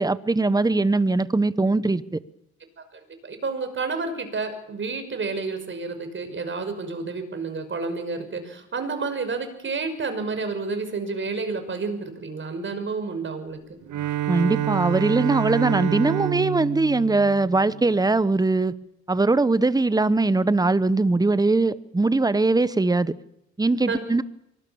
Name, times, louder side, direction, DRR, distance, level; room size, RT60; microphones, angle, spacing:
voice 1, 0.0-2.0 14.3-18.7 19.1-23.1 23.6-24.2, right 3 dB, 15° right, 15 dB, 1.1 m, -21 dB
voice 2, 2.8-13.6 23.9-24.0, right 4 dB, 40° right, 8 dB, 5.9 m, -30 dB
Bowed string instrument, 13.9-18.2, right 14 dB, 75° right, 1.0 m, -28 dB
24.5 x 19.5 x 7.2 m, 0.81 s
cardioid pair, 90°, 30 cm